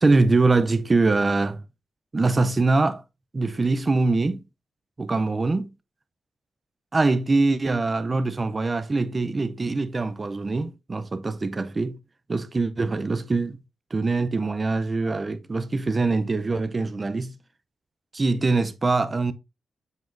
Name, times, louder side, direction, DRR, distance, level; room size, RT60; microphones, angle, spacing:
voice 1, 0.0-1.6 2.1-3.0 3.3-4.4 5.0-5.7 6.9-12.0 12.3-13.6 13.9-17.3 18.1-19.3, right 3 dB, 25° right, 0.5 m, -23 dB
7.2 x 5.8 x 2.5 m
wide cardioid pair, 150°, 0 cm